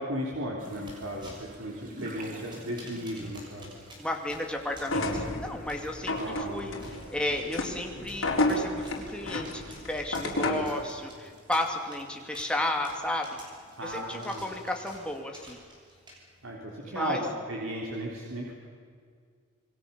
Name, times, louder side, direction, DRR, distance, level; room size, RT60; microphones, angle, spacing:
voice 1, 0.0-3.8 6.2-6.7 10.4-10.7 13.8-14.5 16.4-18.5, equal, 80° right, -2 dB, 3.6 m, -35 dB
sound 1, 0.6-15.2, right 1 dB, 40° right, 3.3 m, -52 dB
sound 2, 0.8-16.5, equal, 25° right, 6.5 m, -52 dB
voice 2, 4.0-6.8 7.1-13.3 13.8-15.6 16.8-17.2, left 1 dB, 5° left, 2 dB, 2.7 m, -33 dB
sound 3, 4.8-10.8, left 1 dB, 85° left, 4.0 m, -31 dB
27.0 x 22.0 x 7.1 m, 2.1 s
head